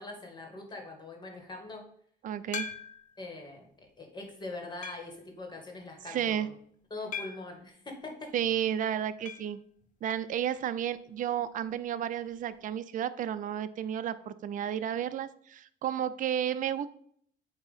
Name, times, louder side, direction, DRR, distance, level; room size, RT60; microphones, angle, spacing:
voice 1, 0.0-1.8 3.2-3.7 4.0-6.6 6.9-8.3, left 2 dB, 25° left, 2 dB, 2.0 m, -42 dB
voice 2, 2.2-2.7 6.1-6.5 8.3-9.6 10.0-16.9, right 10 dB, 50° right, 12 dB, 0.5 m, -32 dB
sound 1, 2.5-3.2 3.8-3.9 4.8-5.2 7.1-7.6 9.3-9.6 9.8-9.9 10.2-10.3 12.3-12.4, left 6 dB, 50° left, 0.8 m, -40 dB
8.8 x 3.0 x 5.6 m, 0.63 s
cardioid pair, 110°, 17 cm